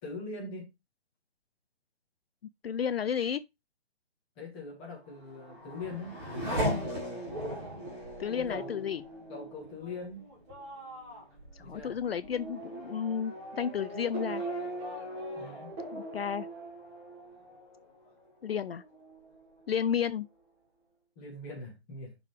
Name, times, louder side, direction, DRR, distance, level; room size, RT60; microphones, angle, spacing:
voice 1, 0.0-0.7 4.4-7.0 8.3-8.9 9.3-10.3 11.6-12.0 15.4-15.8 21.2-22.2, left 3 dB, 10° left, 1.3 m, -42 dB
voice 2, 2.6-3.4 8.2-9.0 11.5-14.4 15.9-16.5 18.4-18.8 19.7-20.3, left 8 dB, 65° left, 0.5 m, -32 dB
Race car auto racing / Accelerating revving vroom, 5.1-18.3 18.7-19.4, right 1 dB, 10° right, 2.0 m, -39 dB
11.0 x 3.8 x 3.2 m
hypercardioid pair, 175°, 33 cm